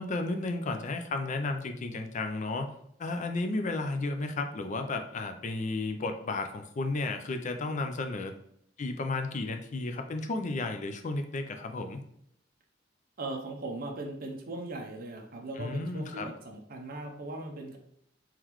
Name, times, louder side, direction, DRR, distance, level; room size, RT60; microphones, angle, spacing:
voice 1, 0.0-2.7 3.0-8.3 8.8-12.0 15.6-16.3, left 2 dB, 40° left, 6 dB, 0.4 m, -33 dB
voice 2, 13.2-17.8, right 2 dB, 50° right, 2 dB, 0.6 m, -39 dB
3.8 x 3.0 x 3.0 m, 0.71 s
head